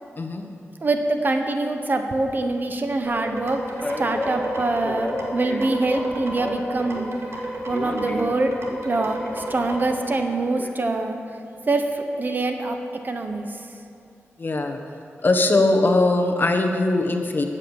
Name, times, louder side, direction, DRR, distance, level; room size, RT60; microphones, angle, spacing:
voice 1, 0.8-3.6 4.0-7.1 7.7-8.5 8.8-11.2 11.7-12.8 13.0-13.7, right 2 dB, 40° right, 5 dB, 1.2 m, -24 dB
sound 1, 3.1-9.9, right 1 dB, 65° right, 2.3 m, -32 dB
Male speech man speaking, 3.8-7.1 7.3-10.7, left 1 dB, 25° left, 1.6 m, -32 dB
voice 2, 14.4-14.8 15.2-17.5, left 2 dB, 45° left, 4 dB, 1.4 m, -20 dB
14.5 x 8.8 x 7.3 m, 2.5 s
wide cardioid pair, 85°, 5 cm